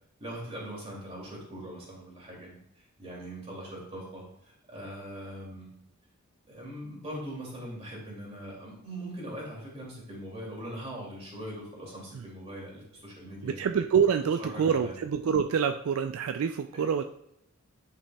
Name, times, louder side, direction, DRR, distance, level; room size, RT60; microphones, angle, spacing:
voice 1, 0.2-2.6 3.0-5.8 6.5-13.6 14.4-15.0 16.7-16.8, right 1 dB, 30° right, -3 dB, 2.5 m, -41 dB
voice 2, 13.4-17.0, right 7 dB, 75° right, 7 dB, 0.4 m, -26 dB
9.9 x 5.4 x 2.3 m, 0.76 s
head